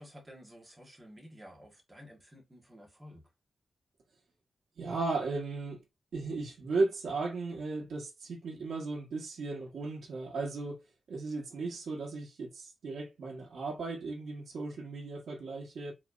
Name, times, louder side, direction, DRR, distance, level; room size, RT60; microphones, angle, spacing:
voice 1, 0.0-3.2, equal, 15° right, 1.6 m, -52 dB
voice 2, 4.8-5.8 6.1-10.8 11.1-15.9, right 3 dB, 85° right, 1.6 m, -36 dB
4.7 x 3.4 x 2.6 m
wide cardioid pair, 145°, 0 cm